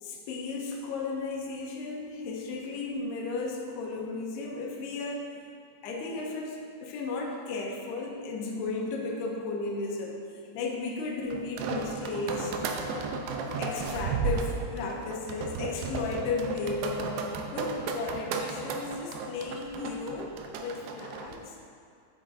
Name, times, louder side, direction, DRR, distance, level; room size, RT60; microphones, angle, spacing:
voice 1, 0.0-5.3 5.8-10.2 10.5-12.6 13.6-17.3 17.5-20.3 20.6-21.6, left 3 dB, 80° left, 0 dB, 2.8 m, -34 dB
sound 1, 11.3-21.4, right 4 dB, 85° right, 2.1 m, -34 dB
9.8 x 7.8 x 2.5 m, 2.3 s
omnidirectional pair, 5.0 m